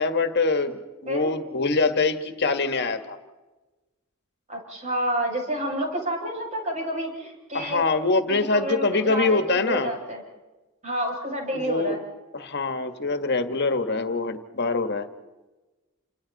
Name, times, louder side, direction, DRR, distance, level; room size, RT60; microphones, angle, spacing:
voice 1, 0.0-3.2 7.5-9.9 11.5-12.0 12.3-15.1, left 3 dB, 55° left, 7 dB, 1.8 m, -24 dB
voice 2, 4.5-7.8 8.3-10.2 10.8-12.0, right 1 dB, 35° right, 0 dB, 7.3 m, -29 dB
29.5 x 27.5 x 4.3 m, 1.1 s
head